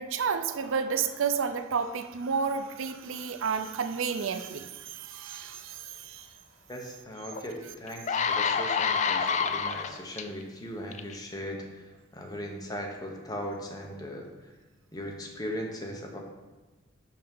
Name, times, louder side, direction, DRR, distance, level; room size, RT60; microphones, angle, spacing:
voice 1, 0.0-6.3, right 6 dB, 70° right, 9 dB, 0.5 m, -31 dB
voice 2, 6.7-11.8 12.1-14.3 14.9-16.2, equal, 20° left, 1 dB, 1.1 m, -38 dB
sound 1, 7.3-7.4 7.9-10.2 10.9-11.1, left 6 dB, 35° left, 0.4 m, -27 dB
5.7 x 5.4 x 5.4 m, 1.2 s
head